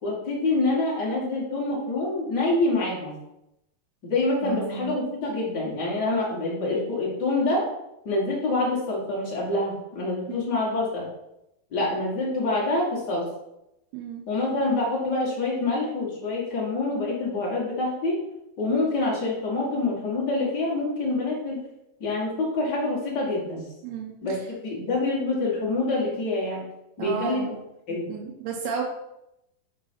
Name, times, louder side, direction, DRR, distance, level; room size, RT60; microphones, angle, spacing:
voice 1, 0.0-3.1 4.0-7.7 8.0-11.0 11.7-13.2 14.3-18.2 18.6-21.6 22.0-23.6 24.2-26.6 27.0-27.4 27.9-28.1, left 2 dB, 75° left, -5 dB, 0.9 m, -26 dB
voice 2, 4.4-5.0 10.3-10.5 13.9-14.3 23.8-24.1 27.0-27.6 28.1-28.8, right 6 dB, 90° right, -1 dB, 2.8 m, -33 dB
6.1 x 4.7 x 4.3 m, 0.86 s
omnidirectional pair, 4.5 m